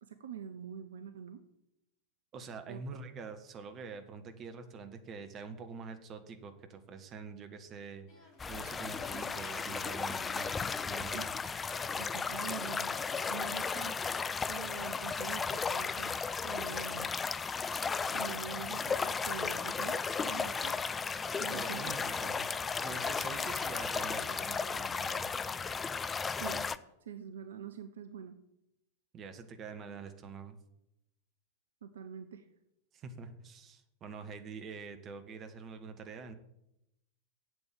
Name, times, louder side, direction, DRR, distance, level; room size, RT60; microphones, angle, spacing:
voice 1, 0.0-1.4 2.7-2.8 11.1-11.2 12.0-13.0 13.3-13.9 14.5-16.2 16.4-17.1 18.1-20.8 21.4-21.8 26.3-26.7 27.0-28.4 31.8-32.5, right 7 dB, 65° right, 9 dB, 0.7 m, -45 dB
voice 2, 2.3-11.3 21.5-22.5 22.8-25.3 29.1-30.6 32.9-36.4, right 5 dB, 30° right, 8 dB, 1.5 m, -46 dB
sound 1, 8.1-26.9, left 2 dB, 40° left, 2.9 m, -56 dB
sound 2, 8.4-26.8, left 5 dB, 15° left, 0.4 m, -35 dB
8.0 x 7.8 x 8.8 m, 0.84 s
figure-of-eight pair, 90°, 0 cm